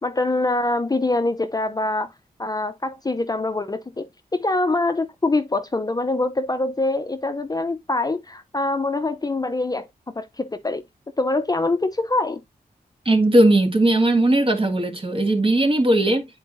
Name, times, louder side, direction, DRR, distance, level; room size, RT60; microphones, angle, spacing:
voice 1, 0.0-2.1 2.4-4.1 4.3-10.8 11.2-12.4, left 2 dB, 25° left, 0.6 m, -24 dB
voice 2, 13.0-16.3, right 1 dB, 35° right, 1.7 m, -18 dB
9.7 x 4.5 x 2.6 m
cardioid pair, 65°, 16 cm